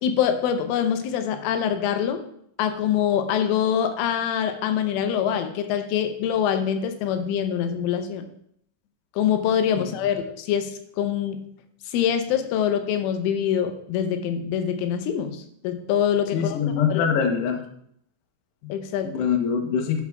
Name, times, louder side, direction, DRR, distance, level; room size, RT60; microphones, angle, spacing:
voice 1, 0.0-2.2 2.6-8.3 9.2-11.4 11.9-16.6 16.9-17.1 18.6-19.1, left 9 dB, 90° left, 7 dB, 3.3 m, -24 dB
voice 2, 16.3-17.6 19.0-20.0, left 7 dB, 70° left, 4 dB, 2.8 m, -23 dB
11.0 x 10.5 x 2.4 m, 0.69 s
omnidirectional pair, 5.6 m